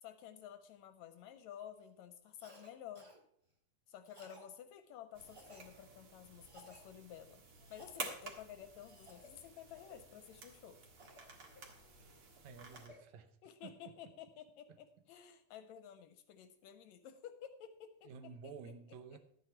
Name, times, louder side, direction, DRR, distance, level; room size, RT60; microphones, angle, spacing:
voice 1, 0.0-3.1 3.9-7.4 7.7-10.8 13.4-19.0, left 9 dB, 75° left, 10 dB, 1.7 m, -53 dB
Cough, 2.4-2.7 2.9-3.2 4.0-4.5 5.2-5.7 6.4-6.8 7.5-8.0 8.8-9.3 9.8-10.0 11.0-12.0 12.4-13.0, equal, 15° right, 1.1 m, -59 dB
sound 1, 5.1-12.9, right 4 dB, 50° right, 2.4 m, -51 dB
voice 2, 12.4-13.3 13.6-13.7 18.1-19.2, right 6 dB, 75° right, 10 dB, 2.0 m, -51 dB
12.0 x 8.8 x 4.5 m, 0.68 s
omnidirectional pair, 3.5 m